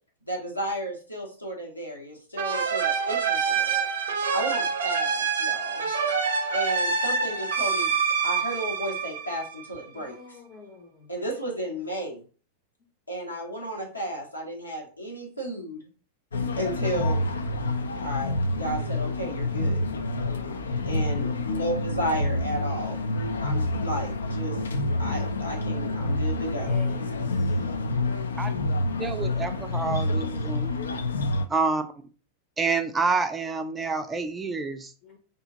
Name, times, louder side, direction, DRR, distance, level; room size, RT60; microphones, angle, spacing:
voice 1, 0.3-3.9 4.3-5.9 6.5-7.9 8.2-10.4 11.1-12.2 13.1-15.9 16.6-17.3 18.0-19.8 20.9-23.0 23.4-24.6 25.0-26.7, equal, 85° left, -2 dB, 0.8 m, -33 dB
sound 1, 2.4-9.8, right 5 dB, 65° right, 0.5 m, -26 dB
voice 2, 9.9-11.1 20.0-20.8 26.4-27.6 35.0-35.2, left 3 dB, 30° left, 3 dB, 0.6 m, -48 dB
sound 2, 16.3-31.5, left 2 dB, 70° left, 0.3 m, -28 dB
voice 3, 29.0-30.8 31.5-31.8 32.6-34.9, right 4 dB, 15° right, 7 dB, 0.4 m, -28 dB
2.8 x 2.5 x 3.8 m, 0.39 s
figure-of-eight pair, 90°, 0 cm